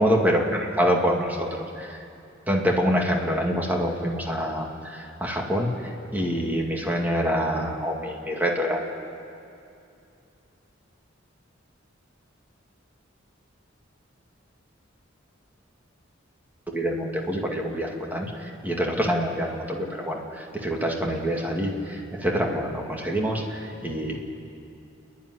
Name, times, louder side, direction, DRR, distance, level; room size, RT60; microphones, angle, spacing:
voice 1, 0.0-2.0 2.5-8.8 16.7-24.2, equal, 10° right, 0 dB, 2.3 m, -26 dB
29.5 x 10.5 x 9.8 m, 2.7 s
head